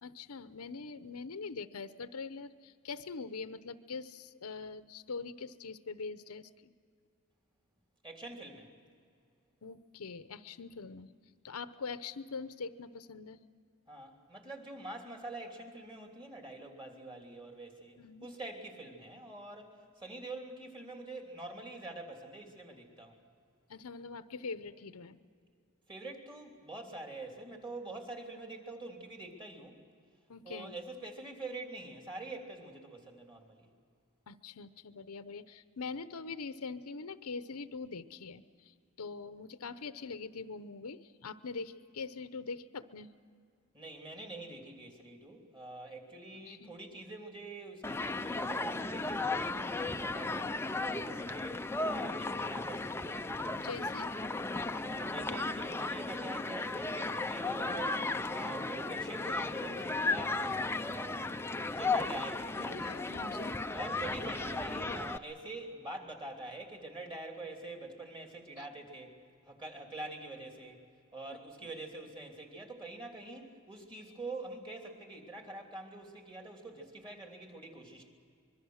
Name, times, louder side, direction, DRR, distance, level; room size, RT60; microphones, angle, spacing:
voice 1, 0.0-6.7 9.6-11.1 11.4-13.4 18.0-18.3 23.7-25.2 30.3-30.7 34.3-43.1 46.5-46.8 53.6-54.2 62.6-63.6 68.6-68.7 71.6-71.7, left 4 dB, 85° left, 12 dB, 0.8 m, -43 dB
voice 2, 8.0-8.7 13.9-23.2 25.9-29.8 30.4-33.7 43.7-53.3 54.8-61.3 61.7-62.8 63.7-69.1 69.5-70.8 71.1-78.1, right 2 dB, 20° right, 2 dB, 3.2 m, -45 dB
Human group actions, 47.8-65.2, left 3 dB, 10° left, 0.5 m, -35 dB
25.0 x 22.0 x 6.5 m, 2.3 s
head